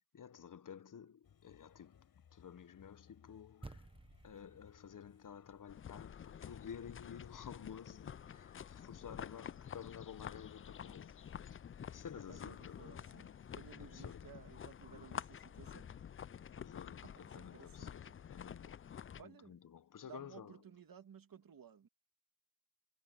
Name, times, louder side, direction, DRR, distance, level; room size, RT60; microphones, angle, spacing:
voice 1, 0.1-3.9 4.2-11.3 11.9-13.1 13.8-14.2 16.5-20.6, left 8 dB, 60° left, 1.0 m, -52 dB
sound 1, 1.2-13.5, left 8 dB, 90° left, 5.7 m, -66 dB
sound 2, 3.6-8.1, right 2 dB, 15° right, 1.3 m, -58 dB
sound 3, 5.7-19.2, left 8 dB, 35° left, 0.4 m, -49 dB
voice 2, 12.3-15.9 17.0-18.2 19.2-19.6 20.0-21.9, right 7 dB, 70° right, 2.4 m, -57 dB
cardioid pair, 65°, 36 cm